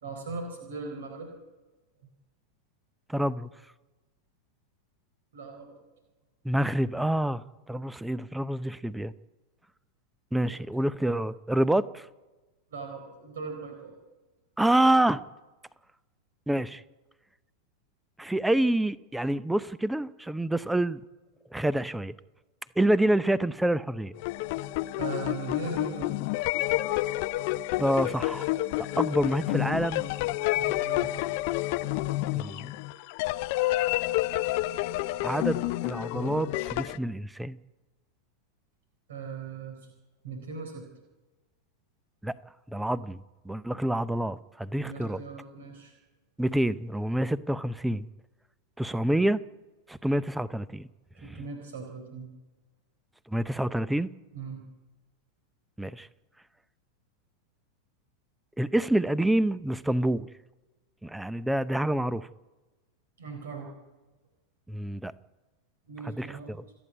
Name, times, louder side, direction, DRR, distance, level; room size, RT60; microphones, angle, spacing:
voice 1, 0.0-1.3 5.3-5.8 10.4-10.5 12.7-14.0 25.0-26.1 30.5-31.1 39.1-39.8 40.2-40.9 44.8-45.9 51.2-52.3 54.3-54.6 63.2-63.7 65.9-66.5, right 4 dB, 60° right, 3 dB, 4.0 m, -39 dB
voice 2, 3.1-3.5 6.4-9.1 10.3-12.1 14.6-15.2 16.5-16.8 18.2-21.0 21.5-22.1 22.8-24.1 27.8-28.5 29.0-30.0 32.3-32.7 35.2-37.6 42.2-42.3 42.7-43.2 43.4-45.2 46.4-48.1 48.8-49.4 49.9-50.9 51.2-51.4 53.3-54.1 55.8-56.1 58.6-60.3 61.0-62.3 64.7-65.1 66.2-66.3, right 1 dB, 5° right, 19 dB, 0.7 m, -27 dB
sound 1, 24.2-37.0, left 17 dB, 45° left, 0.6 m, -29 dB
28.5 x 9.9 x 9.3 m, 1.2 s
figure-of-eight pair, 90°, 0 cm